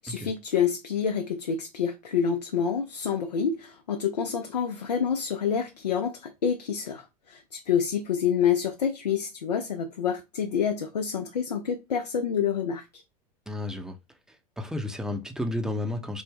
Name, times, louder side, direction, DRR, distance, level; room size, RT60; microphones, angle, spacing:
voice 1, 0.0-13.0, left 7 dB, 85° left, 0.4 m, -28 dB
voice 2, 13.5-14.0 14.3-16.2, left 1 dB, 5° right, 0.5 m, -32 dB
3.4 x 2.0 x 3.4 m
hypercardioid pair, 90°, 20 cm